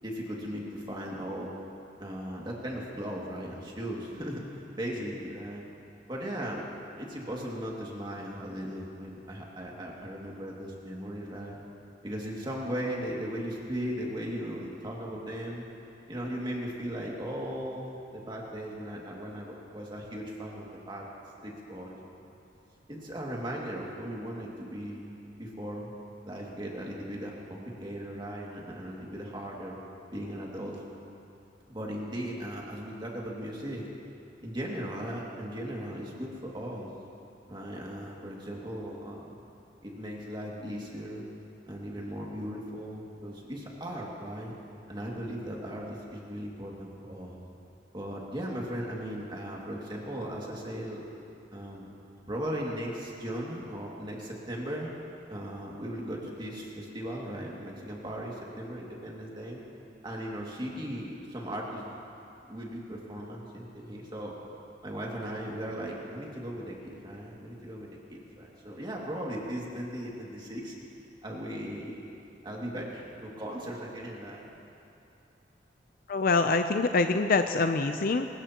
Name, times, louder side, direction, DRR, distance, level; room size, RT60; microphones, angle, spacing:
voice 1, 0.0-1.5 2.0-5.7 6.1-6.6 7.0-11.6 12.0-15.7 16.1-21.0 21.4-22.3 22.9-25.1 25.4-25.9 26.2-29.8 30.1-30.8 31.7-33.8 34.4-36.9 37.5-39.4 39.8-41.2 41.7-44.5 44.9-47.4 47.9-51.0 51.5-51.9 52.3-54.9 55.3-59.6 60.0-62.0 62.5-64.4 64.8-70.7 71.2-72.1 72.4-74.6, equal, 25° right, -3 dB, 2.2 m, -37 dB
voice 2, 76.1-78.3, left 3 dB, 55° left, 7 dB, 0.5 m, -25 dB
22.5 x 20.0 x 2.9 m, 2.7 s
head